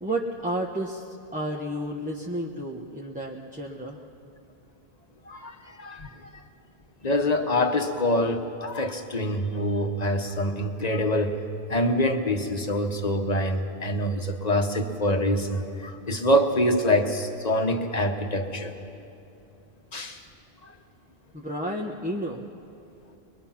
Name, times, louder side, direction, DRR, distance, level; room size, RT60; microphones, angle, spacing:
voice 1, 0.0-4.0 21.3-22.5, right 1 dB, 10° right, -1 dB, 0.9 m, -31 dB
voice 2, 5.3-6.4 7.0-11.4 11.7-18.7 19.9-20.2 20.6-20.7, left 1 dB, 40° left, 5 dB, 1.4 m, -25 dB
23.0 x 22.5 x 5.9 m, 2.8 s
omnidirectional pair, 1.1 m